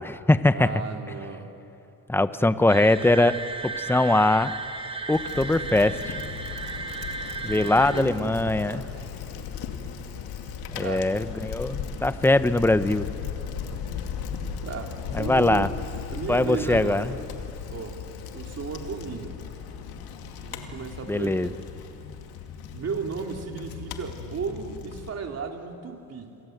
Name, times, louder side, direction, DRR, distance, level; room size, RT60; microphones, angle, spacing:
voice 1, 0.0-0.7 2.1-3.4 3.6-4.5 5.1-6.2 7.4-8.8 10.7-13.1 15.1-15.7 16.3-17.1 21.1-21.5, left 2 dB, 5° left, 12 dB, 0.9 m, -22 dB
voice 2, 0.5-1.5 7.4-9.1 10.8-11.1 14.6-15.7 16.1-17.1 17.7-18.0 18.3-19.4 20.4-21.6 22.7-26.4, right 5 dB, 45° right, 2 dB, 3.3 m, -35 dB
sound 1, 2.7-8.0, right 4 dB, 15° right, 1.5 m, -35 dB
Bicycle, 5.1-25.1, left 7 dB, 85° left, 2.3 m, -37 dB
27.0 x 24.0 x 8.0 m, 2.9 s
cardioid pair, 100°, 36 cm